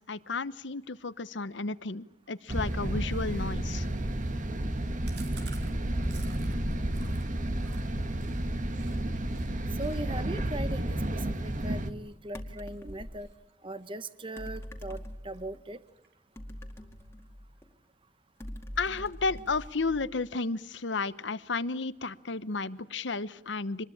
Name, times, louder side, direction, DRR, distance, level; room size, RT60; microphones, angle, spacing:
voice 1, 0.1-3.9 18.8-23.9, left 3 dB, 85° left, 16 dB, 1.0 m, -33 dB
sound 1, 2.5-11.9, right 1 dB, 45° right, 1.8 m, -31 dB
Chewing mastication, 5.0-9.0 9.3-9.5 9.8-12.8 13.2-13.5 13.8-14.7 15.0-15.1 15.3-15.4 15.7-16.3, right 5 dB, 65° right, 4.3 m, -53 dB
voice 2, 9.8-13.3 13.6-15.8, right 1 dB, 30° right, 13 dB, 1.0 m, -39 dB
sound 2, 10.3-10.8 12.3-13.3 14.4-15.6 16.4-17.7 18.4-20.3, equal, 15° left, 2.2 m, -43 dB
26.0 x 20.5 x 8.7 m, 0.76 s
head